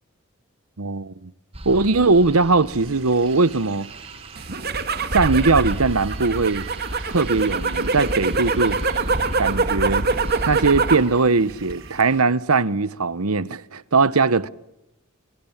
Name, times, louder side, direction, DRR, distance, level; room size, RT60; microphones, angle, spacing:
voice 1, 0.8-1.3 1.6-3.9 5.1-6.7 7.1-8.8 9.4-10.1 10.5-14.5, right 3 dB, 85° right, 1.1 m, -20 dB
sound 1, 1.5-11.3, right 1 dB, 25° right, 1.6 m, -35 dB
sound 2, 2.7-12.2, right 6 dB, 60° right, 4.1 m, -46 dB
sound 3, 4.4-11.1 11.5-12.0, right 4 dB, 45° right, 2.6 m, -24 dB
29.5 x 28.0 x 7.3 m
head